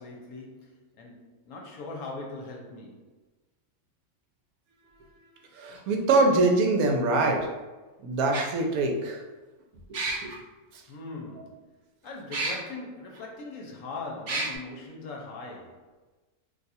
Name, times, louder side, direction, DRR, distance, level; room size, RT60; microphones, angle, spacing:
voice 1, 0.0-3.1 10.9-11.7 12.0-15.9, left 3 dB, 70° left, 0 dB, 0.9 m, -40 dB
voice 2, 5.5-7.5 8.0-9.2 9.9-10.3 10.7-10.8, right 2 dB, 75° right, 2 dB, 1.0 m, -24 dB
sound 1, 5.8-5.9 7.3-7.4 8.3-8.4 9.9-10.3 12.3-12.5 13.2-13.3 14.3-14.5, right 2 dB, 50° right, 1.0 m, -29 dB
2.6 x 2.3 x 4.1 m, 1.2 s
omnidirectional pair, 1.6 m